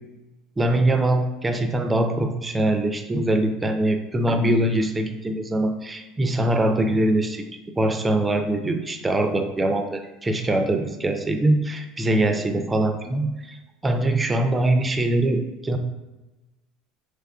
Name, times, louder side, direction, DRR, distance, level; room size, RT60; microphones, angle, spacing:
voice 1, 0.6-7.4 7.8-13.6 13.8-15.8, right 1 dB, 20° right, 6 dB, 0.4 m, -23 dB
3.5 x 3.3 x 2.3 m, 1.1 s
hypercardioid pair, 75°, 0 cm